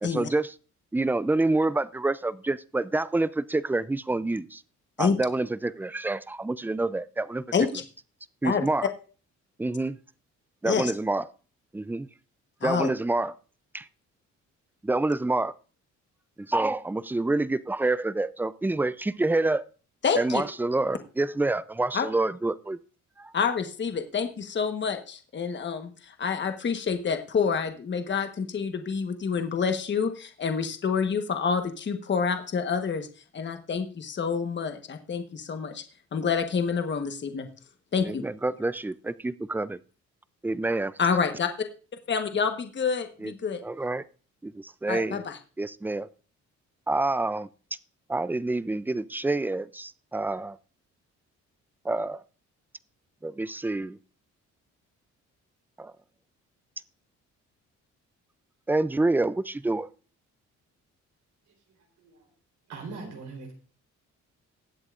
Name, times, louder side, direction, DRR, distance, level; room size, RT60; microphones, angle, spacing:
voice 1, 0.0-0.5 0.9-4.6 5.0-7.4 8.4-8.9 9.6-10.0 10.6-11.3 11.7-12.1 12.6-13.3 13.7-13.9 14.8-15.5 16.4-19.7 20.2-22.8 23.2-23.3 38.0-39.8 40.4-40.9 43.2-43.3 43.6-44.0 44.4-45.2 45.6-46.1 46.9-47.5 48.1-50.6 51.8-52.2 53.2-54.0 55.8-55.9 58.7-59.9, right 2 dB, 5° right, 17 dB, 0.4 m, -27 dB
voice 2, 7.5-7.8 8.4-8.6 10.6-10.9 12.6-12.9 20.0-20.4 21.9-22.1 23.3-33.1 33.3-35.8 36.1-37.5 37.9-38.2 41.0-41.5 42.1-43.6 44.9-45.4, left 6 dB, 35° left, 7 dB, 1.2 m, -28 dB
voice 3, 62.0-62.3 62.7-63.5, right 4 dB, 75° right, 3 dB, 3.8 m, -40 dB
19.5 x 7.8 x 2.5 m, 0.38 s
cardioid pair, 90°, 30 cm